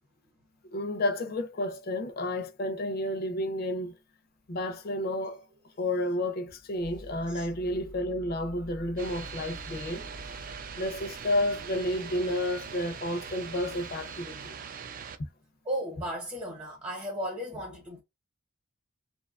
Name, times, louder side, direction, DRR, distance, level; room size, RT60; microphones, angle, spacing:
voice 1, 0.7-4.0 4.5-5.4 5.8-10.1 10.8-14.6, left 1 dB, 45° left, 0.5 m, -31 dB
sound 1, 4.6-12.7, left 1 dB, 70° right, 0.8 m, -49 dB
sound 2, 9.0-15.2, right 6 dB, 40° right, 0.3 m, -42 dB
voice 2, 15.6-18.0, equal, 25° right, 0.9 m, -35 dB
2.6 x 2.3 x 2.4 m
head